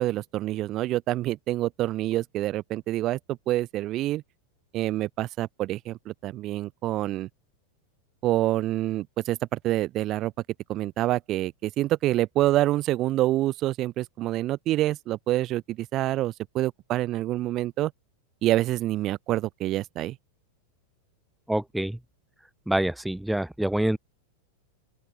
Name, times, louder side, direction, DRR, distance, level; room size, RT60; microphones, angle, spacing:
voice 1, 0.0-4.2 4.7-7.3 8.2-10.3 10.7-17.9 18.4-20.2, right 15 dB, 35° right, 1.2 m, -27 dB
voice 2, 21.5-22.0 22.7-24.0, right 1 dB, 5° right, 0.3 m, -26 dB
open air
figure-of-eight pair, 90°, 0 cm